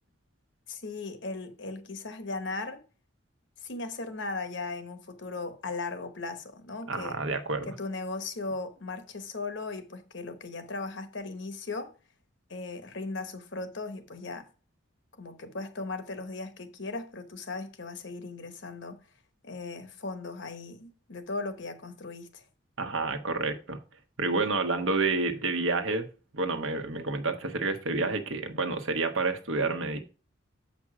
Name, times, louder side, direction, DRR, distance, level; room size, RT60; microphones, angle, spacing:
voice 1, 0.7-2.8 3.6-7.2 7.6-11.9 12.5-14.5 15.2-19.0 19.4-22.4, left 3 dB, 60° left, 1.0 m, -37 dB
voice 2, 6.9-7.7 22.8-23.8 24.2-26.1 26.3-30.0, right 3 dB, 70° right, 1.1 m, -29 dB
7.5 x 5.2 x 4.8 m
head